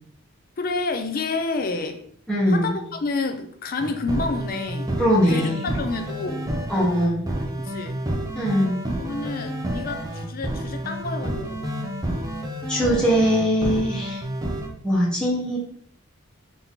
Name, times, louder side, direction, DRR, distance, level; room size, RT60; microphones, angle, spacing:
voice 1, 0.6-2.0 2.5-5.0 5.3-6.4 7.6-8.0 9.0-11.7, left 3 dB, 45° left, 6 dB, 0.4 m, -29 dB
voice 2, 2.3-2.7 5.0-5.6 6.7-7.2 8.3-8.7 12.7-14.2 14.8-15.6, equal, 5° left, -7 dB, 1.0 m, -21 dB
sound 1, 3.8-14.7, right 1 dB, 15° right, 0.6 m, -29 dB
3.9 x 2.8 x 3.6 m, 0.65 s
head